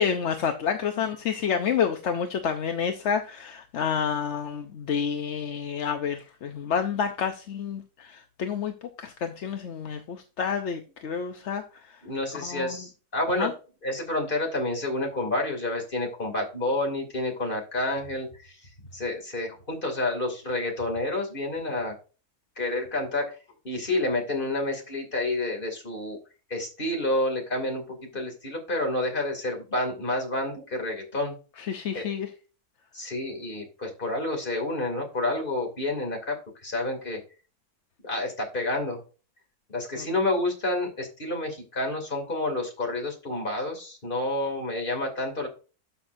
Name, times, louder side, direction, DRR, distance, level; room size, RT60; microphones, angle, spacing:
voice 1, 0.0-11.6 12.3-12.8 13.4-13.5 31.6-32.3 40.0-40.1, left 7 dB, 55° left, 6 dB, 0.9 m, -29 dB
voice 2, 12.0-13.5 13.8-18.5 18.9-21.9 22.6-23.3 23.6-26.2 26.5-31.3 31.9-32.1 32.9-36.4 36.6-37.2 38.0-39.0 39.7-45.5, left 2 dB, 35° left, 2 dB, 2.8 m, -29 dB
12.0 x 5.9 x 2.6 m, 0.34 s
omnidirectional pair, 1.7 m